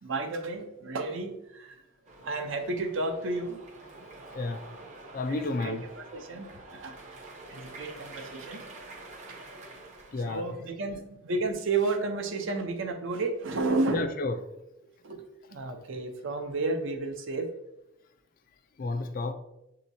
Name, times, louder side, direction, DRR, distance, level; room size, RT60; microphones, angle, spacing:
voice 1, 0.0-1.8 2.2-3.6 5.3-7.0 7.5-8.6 9.3-9.4 10.2-14.0 15.0-15.2 15.5-17.5, right 3 dB, 75° right, 5 dB, 0.6 m, -32 dB
sound 1, 2.1-10.4, right 2 dB, 35° right, 0.6 m, -47 dB
voice 2, 4.3-4.6 5.1-5.8 10.1-10.5 13.9-14.4 18.8-19.3, left 3 dB, 45° left, 10 dB, 0.3 m, -31 dB
7.0 x 2.8 x 2.6 m, 0.88 s
head